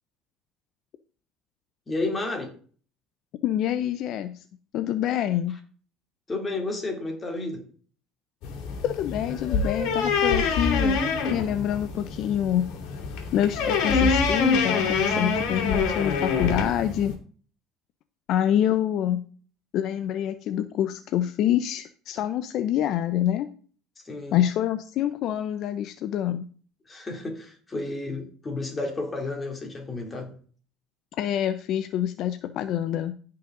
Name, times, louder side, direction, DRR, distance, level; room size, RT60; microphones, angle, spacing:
voice 1, 1.9-2.5 6.3-7.6 24.0-24.4 26.9-30.3, left 2 dB, 20° left, 2.8 m, -31 dB
voice 2, 3.4-4.4 4.7-5.6 8.8-11.0 11.3-12.7 13.3-17.2 18.3-19.2 19.7-23.5 24.3-26.5 31.2-33.1, left 11 dB, 55° left, 0.6 m, -26 dB
sound 1, 8.4-17.1, left 4 dB, 70° left, 2.9 m, -25 dB
15.5 x 5.8 x 3.8 m
cardioid pair, 135°, 0 cm